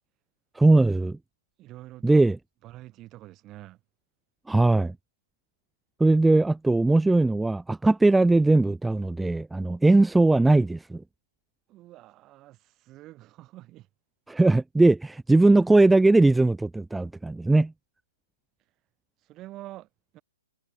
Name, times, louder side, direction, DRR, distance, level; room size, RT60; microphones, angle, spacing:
voice 1, 0.6-1.2 2.0-2.4 4.5-4.9 6.0-11.0 14.3-17.7, right 2 dB, 5° right, 0.7 m, -20 dB
voice 2, 1.6-2.3 2.6-3.8 11.7-13.9 19.3-19.9 20.1-20.2, right 16 dB, 25° right, 2.3 m, -46 dB
figure-of-eight pair, 120°, 0 cm